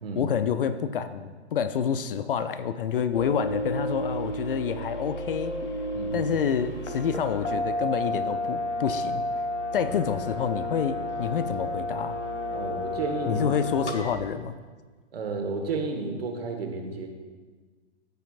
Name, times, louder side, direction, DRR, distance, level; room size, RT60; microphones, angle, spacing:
voice 1, 0.2-5.5 6.1-9.2 9.7-12.2 13.3-14.5, left 7 dB, 50° left, 11 dB, 0.5 m, -28 dB
sound 1, 3.1-14.1, left 1 dB, 90° left, 1.0 m, -31 dB
voice 2, 5.9-6.3 9.7-9.9 12.5-13.5 13.8-14.1 15.1-17.1, right 4 dB, 55° right, 3 dB, 1.5 m, -32 dB
14.0 x 5.7 x 2.4 m, 1.4 s
figure-of-eight pair, 115°, 34 cm